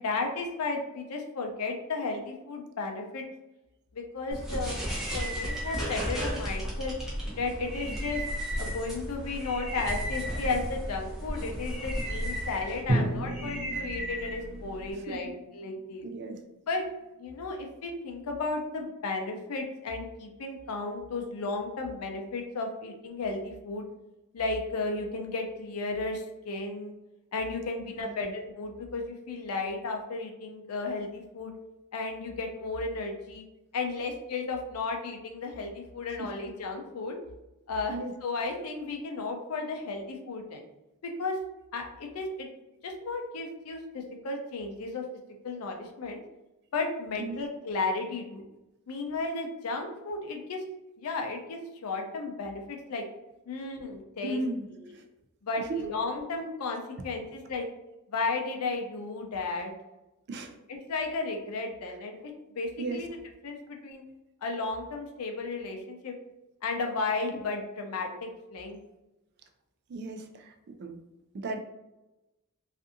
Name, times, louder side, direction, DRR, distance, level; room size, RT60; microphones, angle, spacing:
voice 1, 0.0-3.3 3.9-4.8 5.1-6.9 7.4-8.2 8.6-16.1 16.7-16.8 17.2-23.9 24.3-26.9 27.3-31.5 31.9-33.4 33.7-37.1 37.7-37.9 38.2-40.7 41.0-41.4 41.7-42.5 42.8-45.0 45.4-46.2 46.7-48.4 48.9-50.6 51.0-53.0 53.5-54.4 55.4-57.7 58.1-59.7 60.7-63.1 63.4-64.0 64.4-66.1 66.6-68.8, left 3 dB, 75° left, 2 dB, 0.5 m, -34 dB
sound 1, 4.3-14.9, equal, ahead, 0.6 m, -34 dB
Drum, 12.9-16.9, right 1 dB, 70° right, 0.7 m, -34 dB
voice 2, 14.9-15.3 16.0-16.4 27.8-28.3 36.2-36.3 37.9-38.1 47.2-47.4 54.2-55.0 55.6-55.9 60.3-60.6 62.8-63.0 69.9-71.0 71.3-71.6, right 2 dB, 50° right, 6 dB, 0.3 m, -36 dB
2.5 x 2.5 x 2.5 m, 0.99 s
head